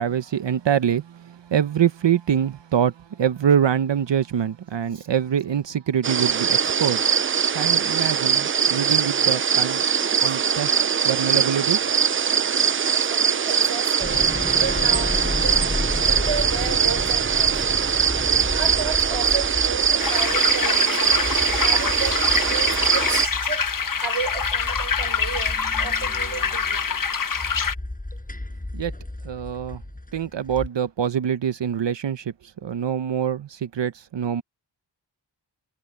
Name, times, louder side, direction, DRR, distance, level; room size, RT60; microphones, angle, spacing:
voice 1, 0.0-7.0 7.5-9.8 10.2-10.8 11.0-11.8 28.7-28.9 29.2-29.8 30.1-32.3 32.6-34.4, right 8 dB, 70° right, 0.9 m, -24 dB
sound 1, 6.0-23.3, right 7 dB, 30° right, 0.4 m, -21 dB
voice 2, 12.9-15.7 16.0-18.1 18.5-21.3 21.6-23.6 24.0-27.1, right 6 dB, 90° right, 5.6 m, -33 dB
sound 2, 14.0-30.7, left 1 dB, 20° left, 7.3 m, -32 dB
sound 3, 20.0-27.7, left 6 dB, 45° left, 1.1 m, -25 dB
wide cardioid pair, 70°, 44 cm